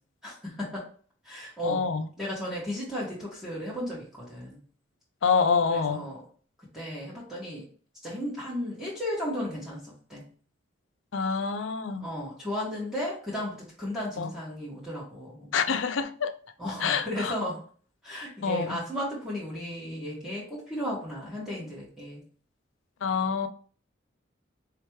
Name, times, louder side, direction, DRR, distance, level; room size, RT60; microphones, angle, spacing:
voice 1, 0.2-0.8 1.2-1.8 2.2-4.6 5.7-6.2 6.7-7.7 8.0-10.2 12.0-15.5 16.6-17.6 18.0-22.2, equal, ahead, 1.7 m, -34 dB
voice 2, 1.6-2.1 5.2-6.0 11.1-12.1 14.2-14.3 15.5-16.3 16.8-17.3 18.4-18.8 23.0-23.5, left 5 dB, 85° left, 0.5 m, -26 dB
4.7 x 3.2 x 3.2 m
head